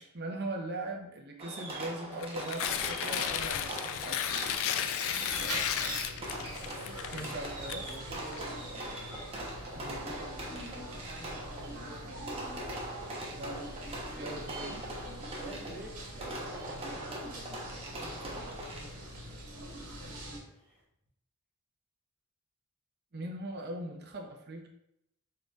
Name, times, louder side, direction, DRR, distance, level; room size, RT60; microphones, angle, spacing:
voice 1, 0.0-4.3 7.1-7.8 9.8-10.0 13.3-13.7 14.2-14.7 23.1-24.7, right 2 dB, 50° right, 1 dB, 0.8 m, -40 dB
Fireworks, 1.4-19.2, right 1 dB, 25° right, 1.0 m, -42 dB
Tearing, 2.1-8.4, left 9 dB, 65° left, 0.3 m, -34 dB
sound 1, 5.3-20.4, right 1 dB, 80° right, 1.5 m, -43 dB
voice 2, 7.2-7.5 7.8-8.5 11.8-12.2 14.1-14.5 15.4-18.1 20.3-20.8, right 2 dB, 5° left, -8 dB, 1.8 m, -49 dB
4.8 x 4.6 x 2.4 m, 0.79 s
head